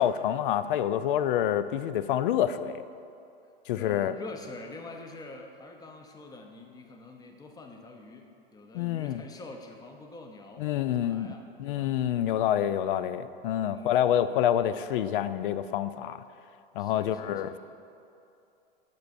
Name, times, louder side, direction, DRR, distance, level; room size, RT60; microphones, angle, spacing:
voice 1, 0.0-2.8 3.7-4.1 8.7-9.2 10.6-11.3 11.6-16.2 16.8-17.6, left 10 dB, 60° left, 13 dB, 0.4 m, -27 dB
voice 2, 3.7-11.9 13.7-14.4 16.8-17.6, left 3 dB, 10° left, 3 dB, 0.6 m, -46 dB
12.0 x 6.9 x 2.6 m, 2.6 s
hypercardioid pair, 110°, 30 cm